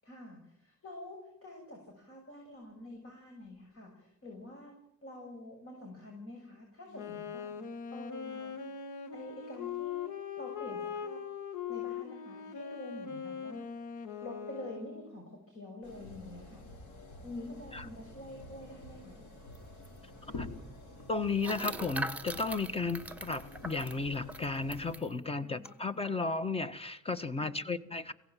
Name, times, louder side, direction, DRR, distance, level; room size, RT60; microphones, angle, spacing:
voice 1, 0.0-4.7 5.0-7.5 7.9-8.6 9.1-10.1 10.4-11.2 11.7-13.8 14.2-16.6 17.2-19.2 25.4-26.0 27.4-27.5, left 1 dB, 45° left, 6.8 m, -47 dB
Wind instrument woodwind instrument, 6.9-15.2, left 7 dB, 90° left, 1.9 m, -41 dB
sound 1, 15.8-24.9, left 2 dB, 70° left, 5.7 m, -48 dB
sound 2, 19.6-19.7 19.8-20.0 21.4-25.1 25.7-25.8 26.0-26.3, right 2 dB, 5° right, 1.7 m, -41 dB
voice 2, 21.1-28.1, left 3 dB, 20° left, 1.4 m, -34 dB
24.5 x 17.0 x 7.7 m
cardioid pair, 90°, 30 cm